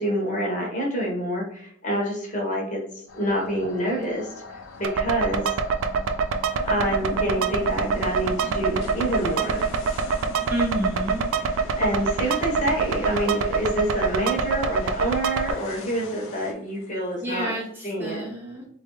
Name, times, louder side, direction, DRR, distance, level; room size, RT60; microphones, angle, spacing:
voice 1, 0.0-2.8 3.1-4.3 4.8-5.5 6.7-9.6 11.8-17.5 17.8-18.3, right 1 dB, 40° left, -1 dB, 1.0 m, -27 dB
sound 1, 3.1-16.5, left 3 dB, 80° left, 0.5 m, -41 dB
sound 2, 4.8-15.5, right 5 dB, 80° right, 0.3 m, -26 dB
sound 3, 6.5-17.6, equal, 60° left, 1.0 m, -44 dB
voice 2, 10.5-11.3 17.2-18.7, equal, 10° right, -2 dB, 0.5 m, -30 dB
3.3 x 2.4 x 3.0 m, 0.66 s
head